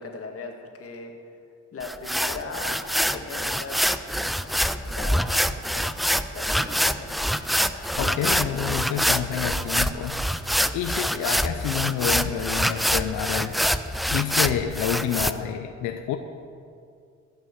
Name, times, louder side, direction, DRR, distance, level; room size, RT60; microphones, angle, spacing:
voice 1, 0.0-1.4 1.7-4.1 4.4-7.2 7.6-8.0, left 3 dB, 50° left, 3 dB, 1.9 m, -39 dB
sound 1, 1.8-15.3, equal, ahead, 0.4 m, -25 dB
voice 2, 8.0-10.4 10.7-13.6 14.1-16.2, left 9 dB, 90° left, 6 dB, 0.7 m, -28 dB
15.5 x 6.1 x 7.3 m, 2.3 s
cardioid pair, 90°, 30 cm